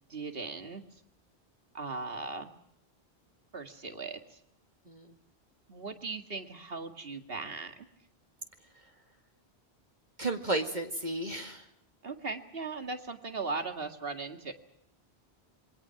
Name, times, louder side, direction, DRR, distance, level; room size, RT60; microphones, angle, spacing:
voice 1, 0.1-0.8 1.7-2.5 3.5-4.4 5.7-7.9 12.0-14.5, right 3 dB, 65° right, 7 dB, 2.4 m, -38 dB
voice 2, 10.2-11.7, right 2 dB, 45° right, 4 dB, 2.3 m, -33 dB
27.5 x 23.0 x 5.9 m, 0.73 s
omnidirectional pair, 1.1 m